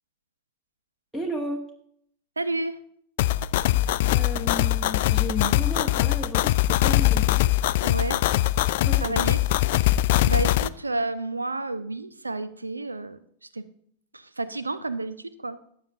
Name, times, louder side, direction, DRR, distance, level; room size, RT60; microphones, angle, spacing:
voice 1, 1.1-1.6 4.1-7.3 8.8-9.1, equal, 5° right, 2 dB, 1.3 m, -33 dB
voice 2, 2.4-2.8 7.8-8.3 9.0-9.4 10.2-13.7 14.1-15.6, right 2 dB, 80° right, 14 dB, 0.6 m, -31 dB
sound 1, 3.2-10.7, left 15 dB, 55° left, 0.3 m, -22 dB
18.0 x 8.3 x 2.7 m, 0.65 s
figure-of-eight pair, 90°, 0 cm